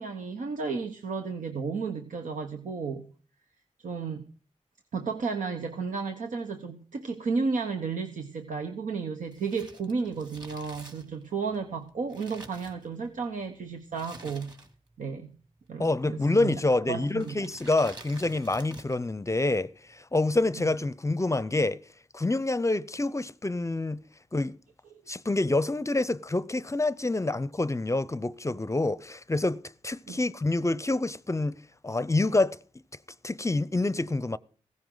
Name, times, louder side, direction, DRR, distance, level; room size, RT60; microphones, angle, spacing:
voice 1, 0.0-3.1 3.8-4.3 4.9-14.5 15.0-15.3 15.7-16.6 16.9-17.5 20.5-20.6 30.1-30.2, right 5 dB, 85° right, 1.2 m, -33 dB
Crumpling crinkling, 9.3-13.3 13.9-15.0 15.2-15.3 16.1-16.5 17.1-19.1 19.3-19.4, right 2 dB, 35° right, 2.7 m, -48 dB
voice 2, 15.8-21.8 22.1-24.0 24.3-24.6 25.1-31.6 31.8-32.6 33.2-34.4, left 2 dB, 25° left, 0.6 m, -27 dB
16.5 x 15.0 x 3.9 m
cardioid pair, 65°, 13 cm